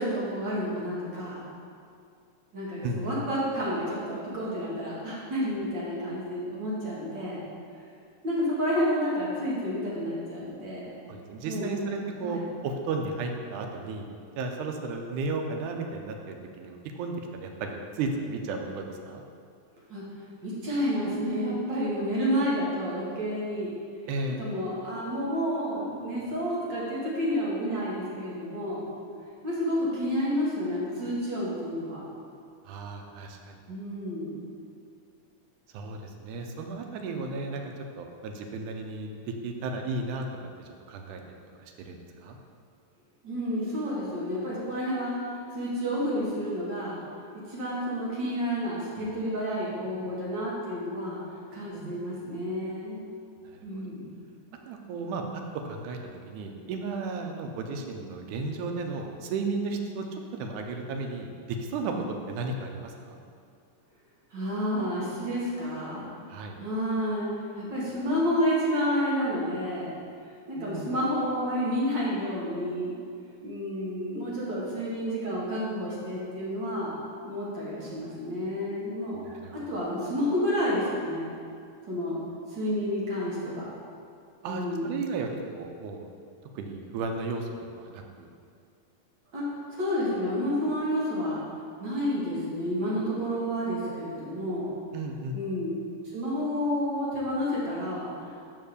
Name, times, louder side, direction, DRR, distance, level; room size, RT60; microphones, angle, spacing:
voice 1, 0.0-1.4 2.5-7.4 8.2-10.9 11.4-11.8 12.2-12.4 19.9-20.0 20.4-23.7 24.4-28.9 29.4-32.0 33.7-34.3 43.2-47.0 47.5-51.2 51.5-53.0 53.6-54.1 64.3-66.0 66.6-67.3 67.6-69.9 70.5-72.9 73.4-77.0 77.2-79.2 79.5-81.3 81.9-82.2 82.5-83.7 84.4-85.0 89.3-89.4 89.7-91.4 91.8-94.7 95.3-95.7 96.1-98.1, equal, 45° right, -7 dB, 1.7 m, -30 dB
voice 2, 2.8-3.2 11.1-14.1 14.4-19.2 24.1-24.4 32.7-33.6 35.7-40.5 40.9-41.2 41.6-42.4 51.7-51.9 53.5-53.9 54.7-56.0 56.3-62.0 62.3-63.2 66.3-66.6 70.6-71.0 79.1-79.6 84.4-86.1 86.6-87.5 87.8-88.3 94.9-95.4, right 3 dB, 85° right, 3 dB, 2.1 m, -34 dB
5.7 x 4.8 x 6.6 m, 2.3 s
omnidirectional pair, 3.5 m